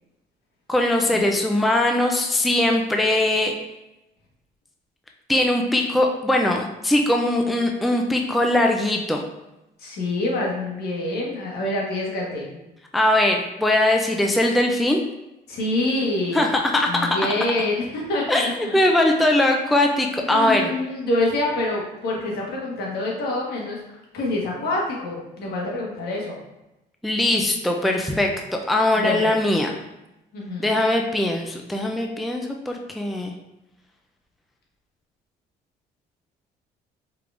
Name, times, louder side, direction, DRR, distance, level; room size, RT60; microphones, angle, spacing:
voice 1, 0.7-3.5 5.3-9.2 12.9-15.0 16.3-17.2 18.3-20.7 27.0-29.7 30.6-33.3, left 1 dB, ahead, 2 dB, 0.4 m, -21 dB
voice 2, 9.8-12.5 15.5-16.4 16.9-18.8 19.1-19.4 20.2-23.8 24.1-26.4 29.0-29.3 30.3-30.8, left 2 dB, 70° left, -3 dB, 1.4 m, -26 dB
4.6 x 3.4 x 2.5 m, 0.94 s
cardioid pair, 110°, 17 cm